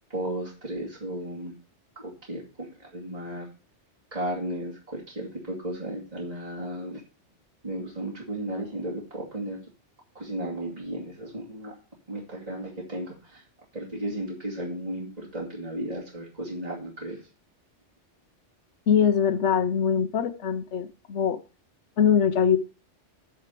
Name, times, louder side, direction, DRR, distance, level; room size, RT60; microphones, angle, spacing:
voice 1, 0.1-1.5 2.0-3.5 4.1-7.0 7.6-9.6 10.1-11.7 12.1-13.4 13.7-17.3, right 1 dB, 30° right, -5 dB, 2.6 m, -34 dB
voice 2, 18.9-21.4 22.0-22.6, left 7 dB, 70° left, 9 dB, 1.1 m, -22 dB
9.2 x 4.8 x 6.7 m, 0.35 s
omnidirectional pair, 1.2 m